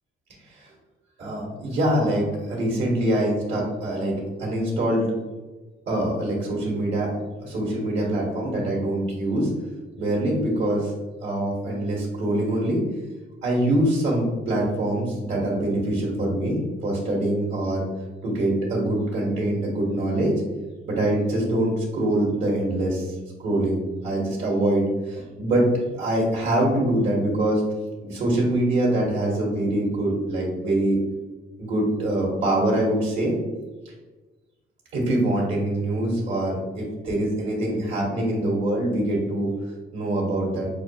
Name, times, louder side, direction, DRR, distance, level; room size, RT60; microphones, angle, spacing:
voice 1, 1.2-5.0 5.9-9.5 10.0-10.9 11.2-12.8 13.4-17.8 18.2-20.3 20.9-27.6 28.0-31.0 31.6-33.4 34.9-39.5 39.9-40.7, right 1 dB, 70° right, -3 dB, 1.3 m, -24 dB
5.6 x 2.2 x 2.8 m, 1.2 s
cardioid pair, 90°, 20 cm